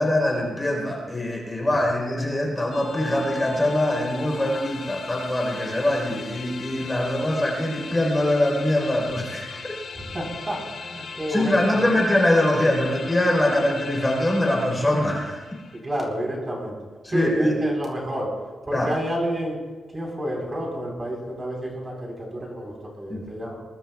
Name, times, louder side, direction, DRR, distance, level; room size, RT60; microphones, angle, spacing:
voice 1, 0.0-9.7 11.3-15.4 17.0-17.6 18.7-18.9 23.1-23.3, left 1 dB, 10° left, -1 dB, 4.1 m, -23 dB
sound 1, 2.7-15.8, left 5 dB, 60° left, 2.3 m, -38 dB
voice 2, 9.9-12.0 15.8-16.8 17.1-18.3 18.7-19.6 19.9-23.6, equal, 20° right, -2 dB, 4.1 m, -29 dB
23.0 x 22.0 x 2.4 m, 1.3 s
wide cardioid pair, 165°, 0 cm